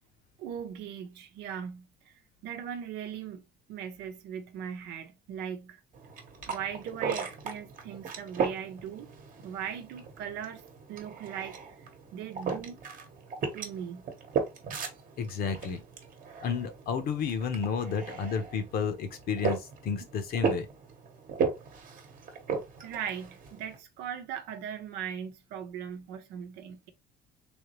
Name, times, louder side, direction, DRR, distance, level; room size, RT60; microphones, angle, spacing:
voice 1, 0.4-1.9 2.4-5.8 6.5-9.1 9.4-10.6 10.9-11.9 12.1-12.8 13.5-14.0 21.5-21.6 22.8-26.9, right 8 dB, 90° right, 0.8 m, -39 dB
sound 1, 5.9-23.8, right 5 dB, 50° right, 1.0 m, -37 dB
voice 2, 15.2-15.8 16.4-20.7, left 6 dB, 65° left, 0.9 m, -31 dB
3.5 x 2.8 x 3.0 m
cardioid pair, 110°, 17 cm